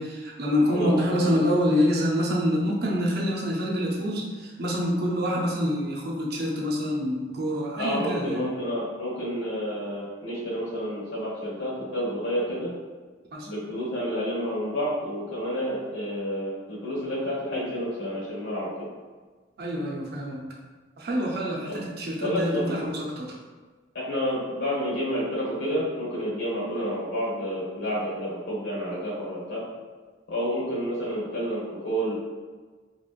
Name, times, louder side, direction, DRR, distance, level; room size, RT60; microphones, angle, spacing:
voice 1, 0.0-8.4 13.3-13.5 19.6-20.4 21.0-23.4, equal, 55° right, -2 dB, 0.6 m, -26 dB
voice 2, 0.7-1.3 7.8-12.7 13.4-18.9 21.7-21.8 22.2-22.8 23.9-29.6 30.3-32.2, equal, 80° left, -8 dB, 1.3 m, -29 dB
3.0 x 2.9 x 2.4 m, 1.4 s
head